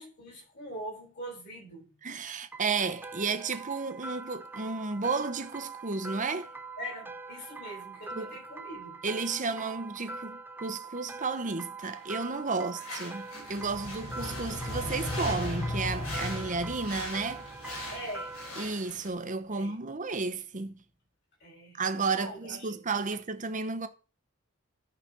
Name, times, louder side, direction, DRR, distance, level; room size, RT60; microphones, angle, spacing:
voice 1, 0.0-1.9 6.8-9.0 17.9-18.7 19.5-19.7 21.4-22.8, equal, 55° left, 7.2 m, -43 dB
voice 2, 2.0-6.5 8.1-8.3 9.0-17.5 18.6-20.7 21.8-23.9, right 4 dB, 40° right, 1.0 m, -32 dB
sound 1, 2.5-18.7, right 3 dB, 10° right, 0.6 m, -43 dB
sound 2, 11.8-19.1, left 2 dB, 85° left, 5.0 m, -44 dB
sound 3, 13.4-18.6, left 1 dB, 30° left, 3.3 m, -37 dB
11.5 x 5.3 x 6.2 m
head